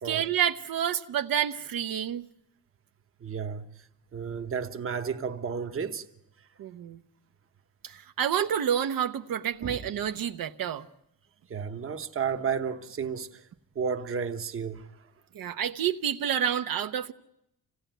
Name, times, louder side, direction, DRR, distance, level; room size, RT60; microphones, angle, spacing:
voice 1, 0.0-2.2 6.6-7.0 7.8-10.9 15.3-17.1, right 9 dB, 75° right, 0.9 m, -29 dB
voice 2, 3.2-3.7 4.1-6.1 9.6-9.9 11.5-13.5 13.7-14.9, right 6 dB, 40° right, 1.1 m, -32 dB
27.0 x 17.5 x 9.1 m
wide cardioid pair, 175°, 35 cm